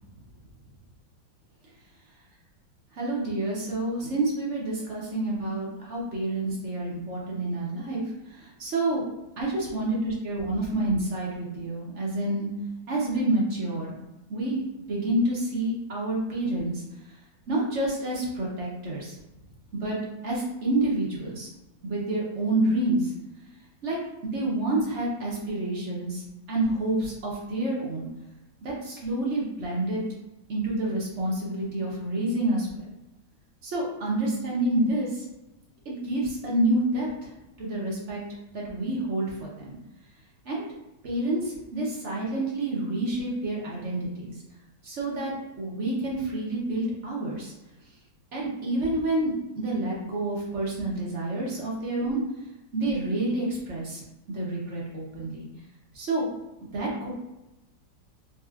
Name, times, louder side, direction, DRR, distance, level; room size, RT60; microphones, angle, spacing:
voice 1, 2.9-9.1 9.4-12.5 12.9-13.9 14.3-14.6 14.9-16.8 17.5-19.2 19.7-20.0 20.2-21.5 21.8-23.1 23.8-28.1 28.6-30.0 30.5-32.9 33.6-35.2 35.8-38.2 38.5-39.8 40.4-40.6 41.0-44.3 44.8-47.5 48.3-52.2 52.7-54.0 54.3-55.5 55.9-56.3 56.7-57.1, right 1 dB, 55° right, -4 dB, 0.8 m, -28 dB
4.0 x 2.9 x 2.4 m, 0.96 s
omnidirectional pair, 2.1 m